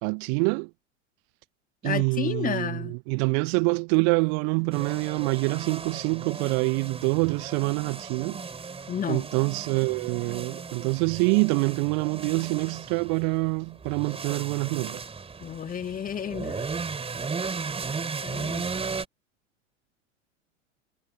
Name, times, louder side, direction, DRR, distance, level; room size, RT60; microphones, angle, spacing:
voice 1, 0.0-0.7 1.8-8.4 9.1-15.0, right 40 dB or more, 45° right, 1.0 m, -26 dB
voice 2, 1.8-2.9 8.9-9.3 15.4-16.7 18.2-18.7, left 8 dB, 20° left, 2.0 m, -31 dB
sound 1, 4.7-19.1, right 5 dB, 15° right, 4.1 m, -36 dB
figure-of-eight pair, 85°, 38 cm